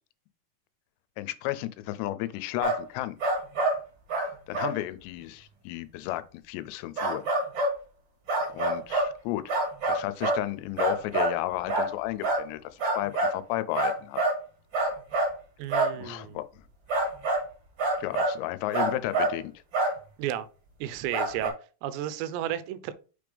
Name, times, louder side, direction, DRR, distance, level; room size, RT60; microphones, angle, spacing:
voice 1, 1.2-3.2 4.5-7.2 8.5-9.4 9.9-14.2 16.0-16.7 18.0-19.5, left 15 dB, 90° left, 2.8 m, -33 dB
sound 1, 2.6-2.8 3.2-3.8 4.1-4.3 4.5-4.8 7.0-7.7 8.3-9.1 9.5-10.4 10.8-11.4 11.7-11.9 12.2-12.5 12.8-13.4 13.8-14.4 14.7-15.4 15.7-16.0 16.9-17.5 17.8-18.4 18.7-19.4 19.7-20.0 21.1-21.5, right 2 dB, 35° right, 2.0 m, -26 dB
voice 2, 15.6-16.4 20.2-20.5 20.8-21.5 21.8-22.9, right 11 dB, 85° right, 2.8 m, -33 dB
6.4 x 3.4 x 5.1 m
omnidirectional pair, 4.9 m